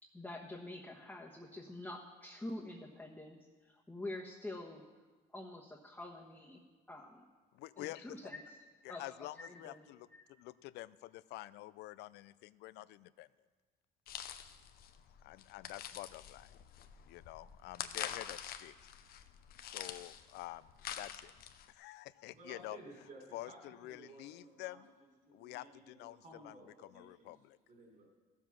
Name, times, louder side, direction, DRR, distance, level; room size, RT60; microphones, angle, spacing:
voice 1, 0.0-4.8 5.3-7.2 7.8-8.6 8.9-10.3, left 1 dB, 10° left, -3 dB, 1.2 m, -47 dB
voice 2, 7.5-8.3 8.8-13.3 15.2-16.5 17.1-18.9 19.6-20.7 20.9-21.3 21.7-22.8 23.3-24.9 25.3-27.6, left 17 dB, 80° left, 18 dB, 0.4 m, -48 dB
sound 1, 14.1-21.7, left 9 dB, 65° left, 0.8 m, -46 dB
voice 3, 22.3-27.3 27.7-28.1, right 2 dB, 50° right, -1 dB, 4.4 m, -56 dB
15.0 x 7.3 x 6.0 m, 1.4 s
cardioid pair, 110°, 17 cm